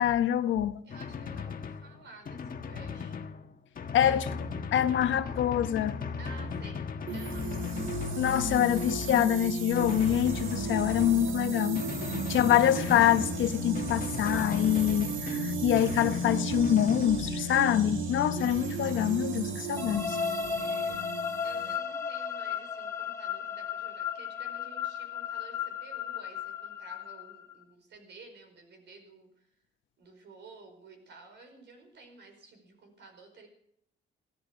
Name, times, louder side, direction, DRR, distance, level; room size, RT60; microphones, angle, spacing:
voice 1, 0.0-0.8 3.9-4.3 4.7-6.0 8.2-11.8 12.3-20.2, left 11 dB, 75° left, 1.0 m, -25 dB
Drum, 0.9-17.3, left 5 dB, 45° left, 1.4 m, -38 dB
voice 2, 0.9-3.2 4.0-4.1 6.2-6.8 7.1-7.5 12.1-12.4 20.5-21.0 21.4-29.3 30.0-33.5, right 3 dB, 65° right, 5.2 m, -52 dB
sound 1, 7.1-21.8, right 2 dB, 85° right, 2.1 m, -34 dB
sound 2, 19.8-27.6, left 7 dB, 15° left, 1.8 m, -35 dB
16.0 x 13.5 x 5.4 m
cardioid pair, 90°, 20 cm